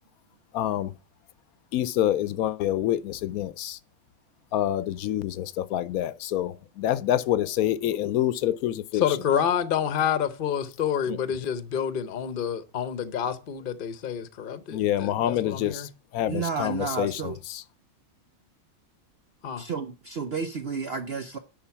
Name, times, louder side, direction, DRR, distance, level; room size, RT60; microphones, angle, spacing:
voice 1, 0.5-0.9 1.7-3.8 4.5-9.2 11.1-11.2 14.7-17.6, left 12 dB, 80° left, 1.1 m, -27 dB
voice 2, 8.9-15.9 19.4-19.6, left 8 dB, 45° left, 0.8 m, -28 dB
voice 3, 16.3-17.4 19.6-21.4, right 5 dB, 50° right, 0.9 m, -31 dB
10.5 x 4.4 x 5.7 m
omnidirectional pair, 1.5 m